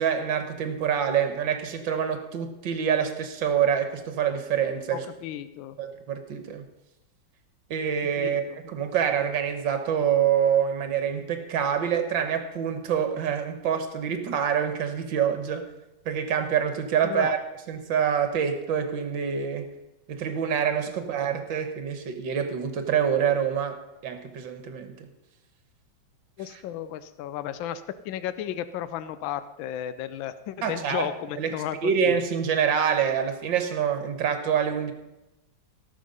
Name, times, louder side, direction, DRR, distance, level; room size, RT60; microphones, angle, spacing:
voice 1, 0.0-5.1 5.8-6.7 7.7-15.7 16.1-17.4 17.7-19.7 20.1-25.1 26.5-26.6 30.6-31.5 31.8-34.9, right 8 dB, 70° right, 8 dB, 2.0 m, -26 dB
voice 2, 4.9-5.8 8.2-8.6 17.0-17.3 26.4-32.2, left 11 dB, 80° left, 13 dB, 1.4 m, -34 dB
17.0 x 6.7 x 5.4 m, 0.96 s
omnidirectional pair, 2.1 m